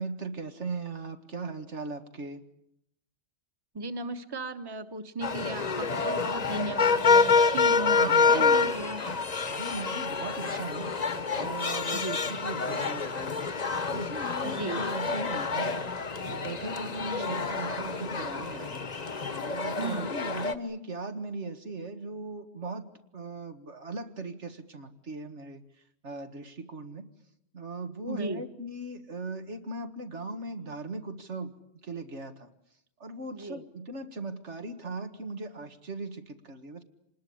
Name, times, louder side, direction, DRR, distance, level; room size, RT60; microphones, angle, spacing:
voice 1, 0.0-2.4 8.0-8.7 9.5-10.9 11.3-13.5 13.9-15.9 16.3-18.9 19.4-25.6 26.0-27.1 27.5-31.5 31.8-32.5 33.0-36.8, right 3 dB, 80° right, 7 dB, 2.1 m, -38 dB
voice 2, 3.7-9.0 11.9-12.2 14.4-14.8 17.0-17.4 19.7-20.1 28.1-28.4 33.3-33.6, right 2 dB, 20° right, 9 dB, 1.2 m, -36 dB
sound 1, 5.2-20.5, left 4 dB, 40° left, 1.1 m, -27 dB
26.5 x 20.0 x 8.7 m, 0.78 s
omnidirectional pair, 1.2 m